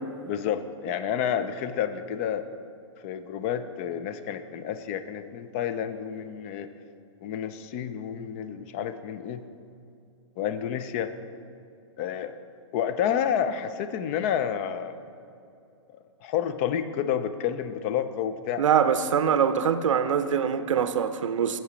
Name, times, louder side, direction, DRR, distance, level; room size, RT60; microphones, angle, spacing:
voice 1, 0.2-2.4 3.0-6.7 7.2-9.4 10.4-11.1 12.0-12.3 12.7-15.0 16.2-18.6, left 9 dB, 25° left, 11 dB, 0.3 m, -29 dB
voice 2, 18.6-21.6, right 7 dB, 85° right, 11 dB, 0.5 m, -23 dB
7.3 x 7.1 x 5.1 m, 2.5 s
hypercardioid pair, 155°, 16 cm